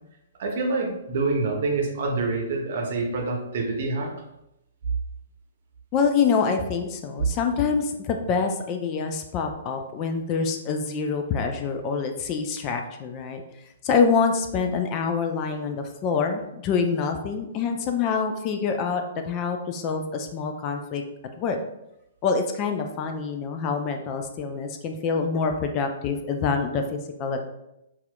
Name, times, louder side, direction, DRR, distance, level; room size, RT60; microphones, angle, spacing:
voice 1, 0.4-4.1, right 3 dB, 50° right, 1 dB, 0.8 m, -26 dB
voice 2, 5.9-13.4 13.8-21.0 21.4-21.6 22.2-27.5, left 5 dB, 30° left, 5 dB, 0.4 m, -26 dB
5.5 x 2.4 x 2.3 m, 0.87 s
figure-of-eight pair, 115°, 0 cm